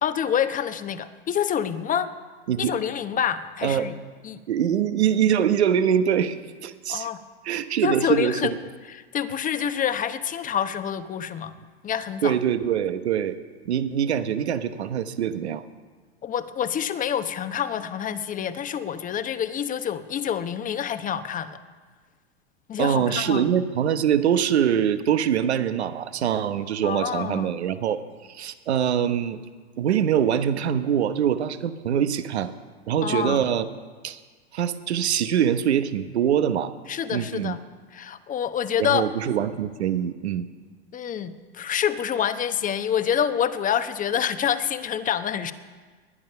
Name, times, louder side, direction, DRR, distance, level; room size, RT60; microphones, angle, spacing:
voice 1, 0.0-2.1 2.6-3.9 4.2-4.4 6.9-7.2 7.8-8.5 8.9-11.5 11.8-12.4 16.2-21.6 22.7-23.5 26.8-27.5 33.0-33.4 36.9-37.6 37.9-39.0 40.9-45.5, left 9 dB, 25° left, 11 dB, 1.0 m, -27 dB
voice 2, 4.5-7.1 7.4-8.5 12.2-13.4 13.6-15.6 22.8-28.0 28.3-29.4 29.8-32.5 32.9-33.7 34.0-34.2 34.5-36.7 37.1-37.6 38.8-40.5, right 9 dB, 80° right, 11 dB, 1.1 m, -24 dB
20.0 x 10.5 x 5.6 m, 1.4 s
hypercardioid pair, 100°, 33 cm